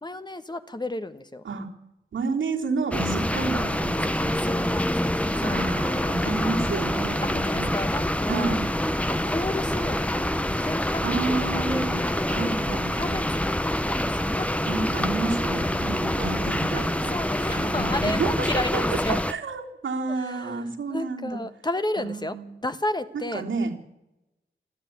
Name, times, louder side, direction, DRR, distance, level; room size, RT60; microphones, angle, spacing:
voice 1, 0.0-1.4 4.0-6.6 7.2-8.5 9.1-12.5 12.9-14.6 16.7-19.2 20.1-22.4 22.6-23.5, left 2 dB, 20° left, 10 dB, 1.4 m, -33 dB
voice 2, 2.1-4.8 5.4-7.7 8.3-8.7 11.0-13.1 14.7-17.2 17.6-18.8 19.1-21.4 22.0-22.5 23.1-23.7, right 3 dB, 90° right, -1 dB, 3.7 m, -30 dB
sound 1, 2.9-19.3, left 1 dB, 5° left, 1.0 m, -26 dB
25.0 x 14.0 x 9.6 m, 0.95 s
wide cardioid pair, 80°, 19 cm